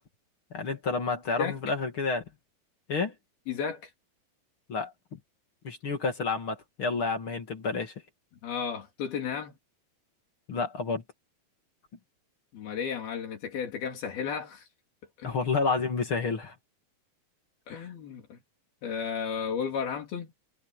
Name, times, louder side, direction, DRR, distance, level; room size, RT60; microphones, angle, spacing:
voice 1, 0.5-2.2 2.9-3.1 4.7-4.9 5.6-7.9 10.5-11.0 15.2-16.5, left 4 dB, 40° left, 2.8 m, -29 dB
voice 2, 3.5-3.9 8.4-9.6 12.5-14.7 15.2-15.3 17.7-18.4 18.8-20.3, left 7 dB, 80° left, 4.9 m, -33 dB
omnidirectional pair, 4.3 m